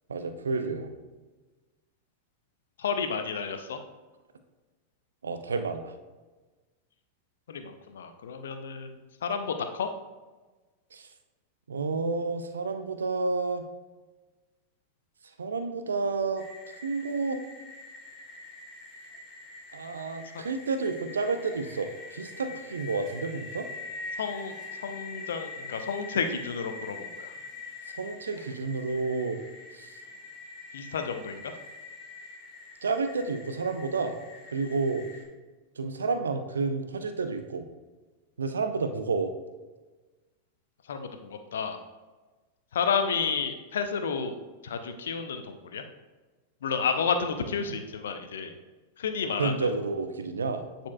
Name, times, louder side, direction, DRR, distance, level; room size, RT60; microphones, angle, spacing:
voice 1, 0.1-0.9 5.2-5.9 10.9-11.1 11.7-13.6 15.4-16.5 16.8-17.4 19.7-23.7 28.0-29.4 29.7-29.9 32.8-34.2 34.5-35.1 35.8-37.7 38.4-39.3 49.4-50.6, right 4 dB, 70° right, 8 dB, 0.5 m, -30 dB
voice 2, 2.8-3.8 7.5-8.9 9.2-9.9 24.2-24.5 24.8-27.3 30.7-31.4 40.9-41.8 42.7-45.8 46.6-48.5 49.0-49.7, left 6 dB, 65° left, 7 dB, 0.6 m, -31 dB
sound 1, 16.4-35.3, left 3 dB, 25° left, 1.9 m, -44 dB
9.4 x 4.3 x 2.3 m, 1.2 s
figure-of-eight pair, 90°, 0 cm